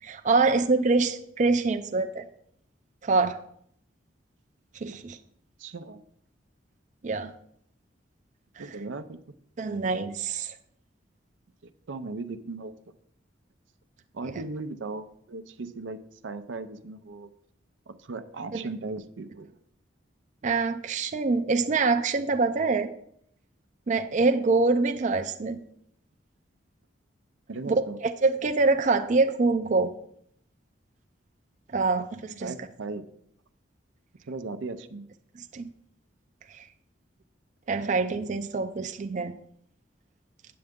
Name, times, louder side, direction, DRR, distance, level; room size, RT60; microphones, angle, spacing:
voice 1, 0.0-2.2 3.0-3.4 4.8-5.2 7.0-7.3 8.6-8.7 9.6-10.6 18.5-18.7 20.4-22.9 23.9-25.6 27.7-27.8 28.0-29.9 31.7-32.5 35.5-35.7 36.5-36.7 37.7-39.3, right 3 dB, 40° right, 7 dB, 0.4 m, -25 dB
voice 2, 5.6-6.0 8.6-9.2 11.6-12.7 14.1-17.3 17.9-19.5 27.5-28.0 32.4-33.1 34.3-35.1, right 3 dB, 85° right, 11 dB, 0.6 m, -37 dB
8.6 x 7.8 x 3.6 m, 0.69 s
head